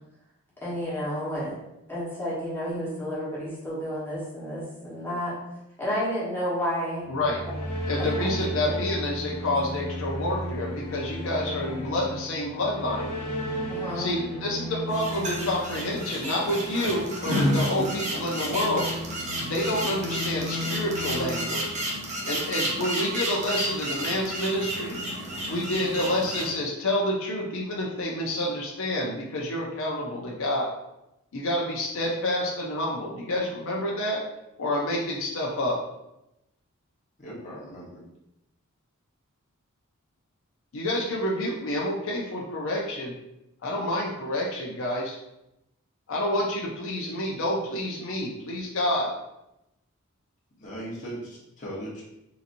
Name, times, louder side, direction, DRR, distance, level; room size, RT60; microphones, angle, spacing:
voice 1, 0.6-1.5 1.9-5.3 5.8-7.0 8.0-8.3 13.7-14.1, equal, 10° left, -9 dB, 1.2 m, -31 dB
sound 1, 7.0-22.3, left 1 dB, 80° left, 1.0 m, -35 dB
voice 2, 7.1-7.4 7.9-13.1 13.9-18.9 19.4-21.8 22.2-25.0 25.5-30.7 31.3-34.2 34.6-35.8 40.7-43.1 43.6-45.2 46.1-49.1, left 1 dB, 60° left, -3 dB, 0.6 m, -28 dB
sound 2, 14.9-26.5, equal, 30° right, 0.7 m, -31 dB
voice 3, 37.2-38.0 50.6-52.0, right 1 dB, 35° left, -7 dB, 1.0 m, -38 dB
3.8 x 2.8 x 2.6 m, 0.88 s
head